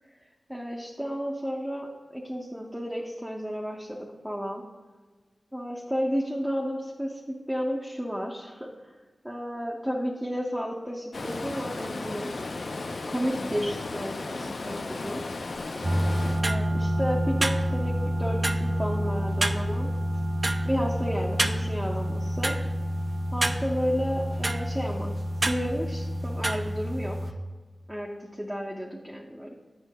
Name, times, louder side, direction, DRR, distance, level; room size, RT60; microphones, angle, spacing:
voice 1, 0.5-4.6 5.5-9.0 9.2-12.3 13.1-15.2 15.6-16.0 16.4-19.9 20.6-22.6 23.3-27.3 27.9-29.5, equal, ahead, -3 dB, 0.6 m, -32 dB
Stream, 11.1-16.4, left 3 dB, 75° left, 0.4 m, -35 dB
sound 1, 15.8-27.3, right 1 dB, 40° right, 0.3 m, -28 dB
8.0 x 6.2 x 2.2 m, 1.4 s
wide cardioid pair, 60°, 0 cm